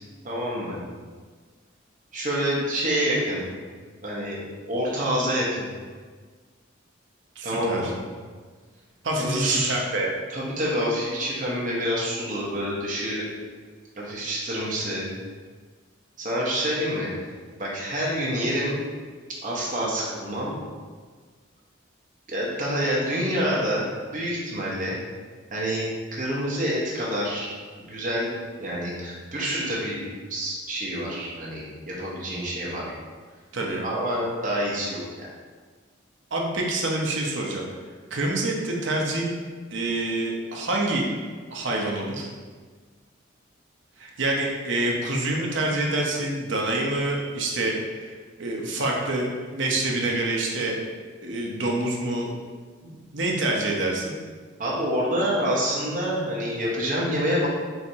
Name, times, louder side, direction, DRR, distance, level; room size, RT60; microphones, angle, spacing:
voice 1, 0.2-0.8 2.1-3.5 4.0-4.4 4.7-5.7 7.4-7.9 9.2-9.7 10.3-13.2 14.0-15.1 16.2-17.1 17.6-18.8 19.4-20.6 22.3-23.9 24.1-25.0 25.5-25.8 26.1-27.5 27.8-32.9 33.8-35.3 54.6-57.5, equal, 40° right, -5 dB, 1.0 m, -27 dB
voice 2, 7.4-7.9 9.0-10.1 33.5-33.8 36.3-37.7 38.1-39.3 39.7-41.1 41.5-42.3 44.0-50.8 51.2-52.3 52.8-54.2, right 2 dB, 70° right, -1 dB, 0.7 m, -27 dB
4.6 x 3.4 x 2.7 m, 1.5 s
head